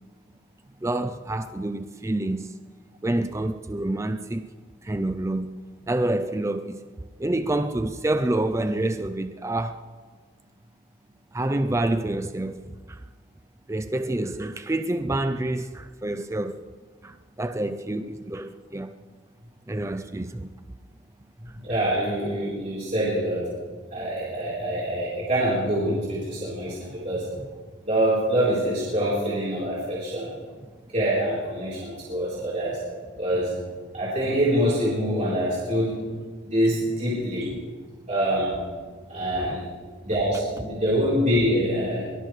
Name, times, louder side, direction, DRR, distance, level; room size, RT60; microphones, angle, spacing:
voice 1, 0.8-2.5 3.0-4.5 4.8-5.6 5.9-6.8 7.2-9.8 11.3-12.6 12.9-13.0 13.7-16.6 17.0-18.9 19.7-20.5 21.5-21.7 39.4-39.6, right 1 dB, 15° right, 0.4 m, -27 dB
voice 2, 21.6-23.5 23.9-27.3 27.8-30.3 30.9-32.8 33.2-33.5 33.9-36.0 36.5-37.5 38.1-38.5 39.1-39.6 40.0-42.0, equal, 35° right, 3.9 m, -25 dB
23.0 x 19.5 x 3.2 m
head